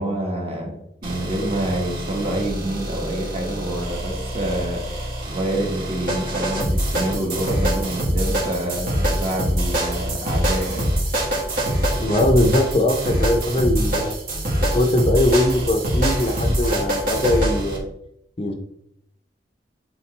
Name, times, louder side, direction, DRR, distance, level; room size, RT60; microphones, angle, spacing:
voice 1, 0.0-10.9, right 1 dB, 35° right, 0 dB, 1.5 m, -27 dB
sound 1, 1.0-17.8, right 1 dB, 55° right, 1.8 m, -24 dB
voice 2, 12.0-14.2 14.6-17.9 18.4-18.5, left 1 dB, 35° left, 4 dB, 0.6 m, -21 dB
8.7 x 3.7 x 3.3 m, 0.77 s
head